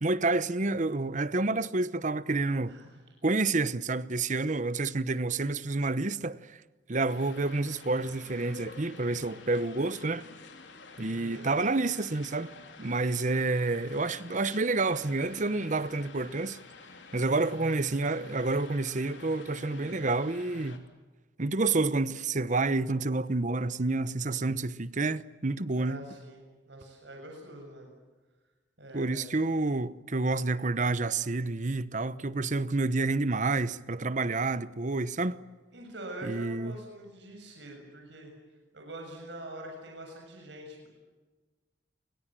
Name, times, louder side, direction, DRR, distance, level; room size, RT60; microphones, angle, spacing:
voice 1, 0.0-2.8 3.2-6.4 6.9-10.3 11.0-12.5 12.8-16.6 17.1-20.9 21.4-26.0 28.9-35.4 36.2-36.7, right 3 dB, 40° right, 0.9 m, -29 dB
voice 2, 2.7-3.0 11.1-11.5 25.7-27.9 28.8-29.3 35.7-38.3 38.7-40.9, right 1 dB, 70° right, 7.1 m, -44 dB
sound 1, 7.1-20.8, left 4 dB, 70° left, 3.6 m, -50 dB
29.0 x 23.5 x 7.6 m
head